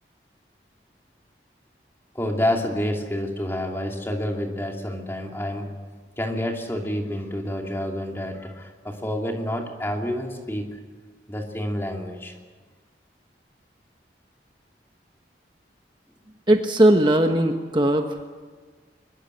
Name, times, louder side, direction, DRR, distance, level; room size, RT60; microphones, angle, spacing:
voice 1, 2.1-5.8 6.2-10.8 11.3-12.3, left 1 dB, 15° left, 2 dB, 2.6 m, -28 dB
voice 2, 16.5-18.1, right 1 dB, 25° right, 4 dB, 1.1 m, -18 dB
22.5 x 22.0 x 8.0 m, 1.5 s
head